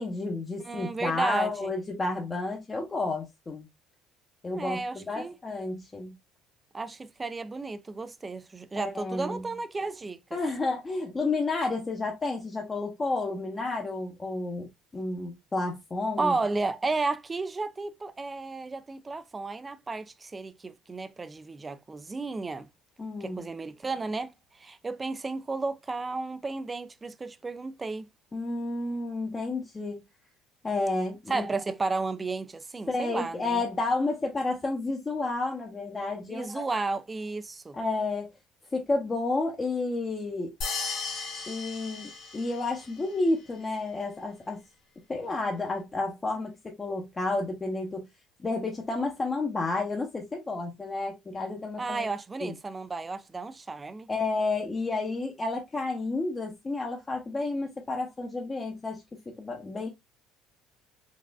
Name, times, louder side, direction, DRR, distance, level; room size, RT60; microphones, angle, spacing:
voice 1, 0.0-3.7 4.4-6.2 8.8-9.4 10.3-16.3 23.0-23.5 28.3-30.0 30.6-31.5 32.9-36.7 37.7-38.3 38.7-40.5 41.5-44.6 45.1-46.5 46.8-48.1 48.4-52.1 52.4-52.5 54.1-59.9, left 3 dB, 25° left, 0.7 m, -31 dB
voice 2, 0.7-1.7 4.5-5.3 6.7-10.4 16.2-22.7 23.2-28.1 31.3-33.6 36.3-37.8 51.8-54.1, right 3 dB, 20° right, 0.4 m, -33 dB
sound 1, 40.6-42.9, left 4 dB, 65° left, 2.1 m, -35 dB
4.0 x 2.4 x 2.2 m
supercardioid pair, 85°, 0 cm